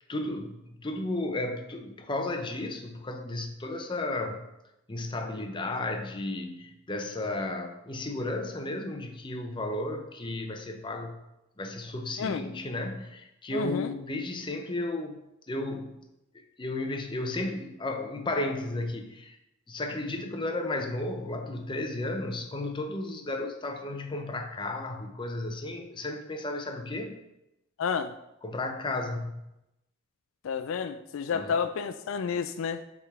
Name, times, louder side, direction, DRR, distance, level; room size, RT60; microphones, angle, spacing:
voice 1, 0.1-4.5 4.9-11.2 11.6-15.2 15.5-15.9 16.3-19.4 19.7-27.2 28.4-29.5 31.3-31.5, left 2 dB, 25° left, 4 dB, 0.6 m, -33 dB
voice 2, 13.5-13.9 27.8-28.1 30.4-32.8, left 6 dB, 75° left, 10 dB, 0.3 m, -30 dB
8.6 x 3.6 x 3.6 m, 0.89 s
head